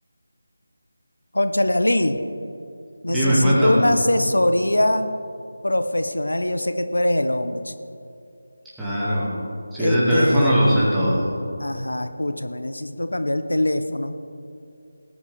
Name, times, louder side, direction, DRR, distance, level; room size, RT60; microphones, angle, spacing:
voice 1, 1.3-2.2 3.0-5.1 5.6-7.7 9.8-10.6 11.6-14.2, left 1 dB, 85° left, 9 dB, 0.8 m, -22 dB
voice 2, 3.1-3.7 8.8-9.3 9.7-11.3, equal, 5° right, -10 dB, 2.3 m, -19 dB
18.0 x 9.7 x 3.5 m, 2.6 s
figure-of-eight pair, 165°, 0 cm